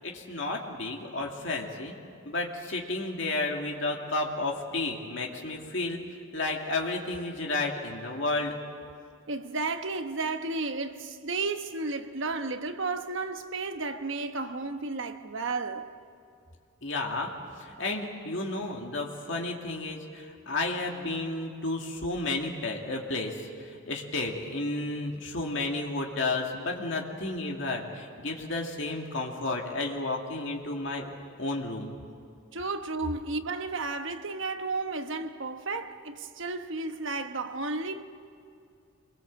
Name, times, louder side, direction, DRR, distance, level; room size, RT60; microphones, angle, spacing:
voice 1, 0.0-2.0 2.2-6.0 6.3-8.6 16.8-17.3 17.6-31.1 31.4-32.0, left 2 dB, 60° left, 2.4 m, -32 dB
voice 2, 9.3-15.9 32.5-38.0, right 3 dB, 60° right, 1.1 m, -33 dB
26.0 x 21.5 x 7.5 m
head